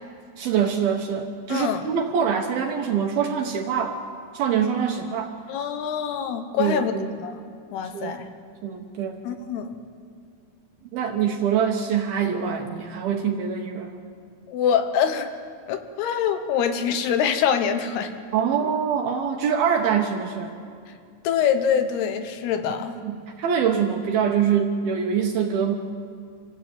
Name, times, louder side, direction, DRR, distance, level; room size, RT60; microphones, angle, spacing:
voice 1, 0.4-4.0 4.3-5.3 6.6-7.1 7.9-8.2 8.6-9.2 10.9-14.0 18.3-20.5 23.0-25.8, right 7 dB, 70° right, 3 dB, 2.5 m, -24 dB
voice 2, 1.5-1.8 5.5-6.9 7.2-7.4 7.7-8.3 9.2-9.7 14.5-15.3 15.7-18.1 21.2-22.9, left 8 dB, 70° left, 8 dB, 2.9 m, -24 dB
27.0 x 15.5 x 8.7 m, 2.2 s
omnidirectional pair, 5.2 m